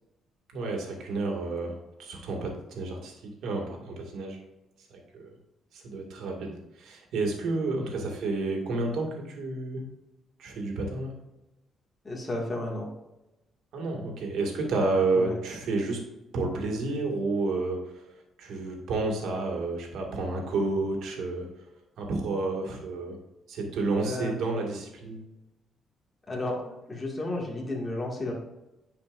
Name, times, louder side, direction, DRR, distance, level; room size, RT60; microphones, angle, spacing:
voice 1, 0.5-3.1 3.4-4.4 4.9-5.3 5.7-9.8 10.4-11.1 13.7-16.0 16.3-17.9 18.4-21.5 22.0-23.2 23.5-25.2, right 3 dB, 80° right, 1 dB, 2.1 m, -30 dB
voice 2, 12.0-12.9 15.1-15.4 24.0-24.4 26.3-28.3, left 2 dB, 25° left, -2 dB, 2.1 m, -32 dB
10.0 x 5.0 x 2.6 m, 0.96 s
cardioid pair, 90°, 0 cm